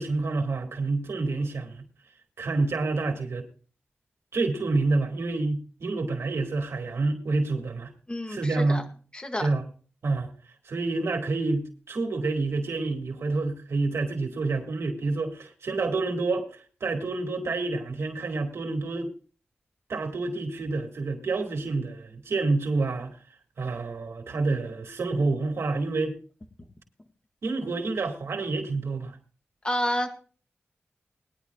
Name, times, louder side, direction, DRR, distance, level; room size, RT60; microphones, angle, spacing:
voice 1, 0.0-1.8 2.4-3.5 4.3-7.9 8.3-8.9 9.4-9.6 10.0-10.3 10.7-19.1 19.9-23.2 23.6-26.2 27.4-29.2, right 3 dB, 85° right, 2.3 m, -28 dB
voice 2, 8.1-8.8 9.1-9.5 29.6-30.2, equal, 25° left, 1.9 m, -29 dB
21.0 x 10.5 x 2.4 m
wide cardioid pair, 95°, 4 cm